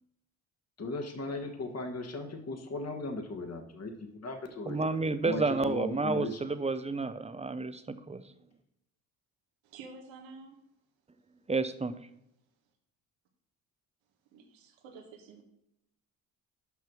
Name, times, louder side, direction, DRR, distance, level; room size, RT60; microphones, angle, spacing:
voice 1, 0.8-5.0 5.2-6.4, left 2 dB, 35° left, 5 dB, 1.5 m, -37 dB
voice 2, 4.7-8.2 11.5-11.9, right 3 dB, 15° right, 12 dB, 0.7 m, -30 dB
voice 3, 9.6-10.6 14.3-15.4, right 4 dB, 70° right, 2 dB, 1.5 m, -50 dB
5.9 x 5.8 x 6.3 m, 0.80 s
hypercardioid pair, 50°, 46 cm